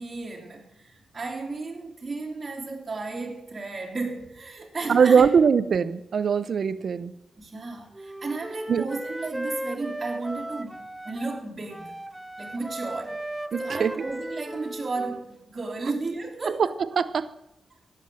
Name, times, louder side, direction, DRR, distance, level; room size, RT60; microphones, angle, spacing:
voice 1, 0.0-5.3 7.4-10.7 11.0-12.0 12.4-13.2 13.6-16.7, right 3 dB, 35° right, -3 dB, 3.2 m, -34 dB
voice 2, 4.9-7.1 8.7-8.9 13.5-13.9 16.6-16.7 17.0-17.3, right 6 dB, 70° right, 15 dB, 0.6 m, -21 dB
Wind instrument woodwind instrument, 7.9-11.4 11.7-15.2, right 1 dB, 10° right, 0.8 m, -36 dB
17.5 x 7.7 x 7.7 m, 0.88 s
cardioid pair, 75°, 0 cm